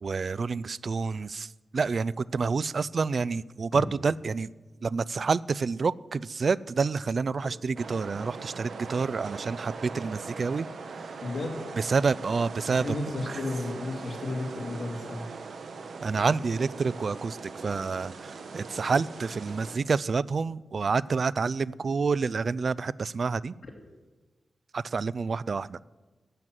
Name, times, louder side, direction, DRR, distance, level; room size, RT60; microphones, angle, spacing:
voice 1, 0.0-4.5 4.8-11.2 11.8-13.0 13.3-13.4 16.0-23.6 24.7-25.8, right 4 dB, 55° right, 20 dB, 0.3 m, -28 dB
sound 1, 7.8-19.8, right 4 dB, 80° right, 1.2 m, -41 dB
voice 2, 11.2-11.6 12.8-15.3, left 2 dB, 55° left, 1 dB, 2.7 m, -33 dB
12.0 x 7.6 x 9.1 m, 1.2 s
cardioid pair, 75°, 0 cm